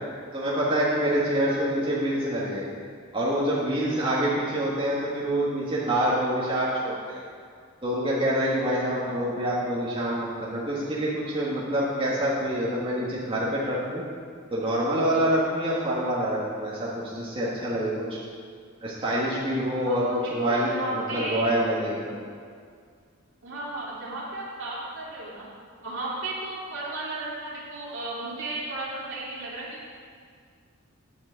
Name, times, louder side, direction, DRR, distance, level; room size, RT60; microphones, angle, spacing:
voice 1, 0.3-2.6 3.1-7.2 7.8-14.0 14.5-18.1 18.8-22.2, right 1 dB, 25° right, -8 dB, 1.6 m, -26 dB
voice 2, 8.9-9.4 19.8-21.5 23.4-25.5 25.8-29.9, right 2 dB, 60° right, -6 dB, 2.8 m, -34 dB
9.5 x 6.0 x 7.4 m, 2.1 s
head